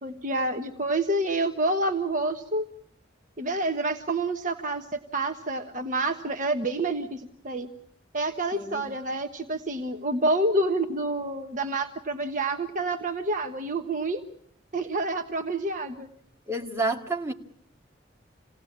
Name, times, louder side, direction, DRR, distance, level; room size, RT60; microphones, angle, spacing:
voice 1, 0.0-2.7 3.4-7.7 8.1-14.2 14.7-16.1, right 2 dB, 40° right, 6 dB, 1.3 m, -28 dB
voice 2, 8.5-8.9 16.5-17.3, right 2 dB, 15° right, 2 dB, 2.1 m, -29 dB
28.0 x 17.5 x 8.7 m, 0.69 s
head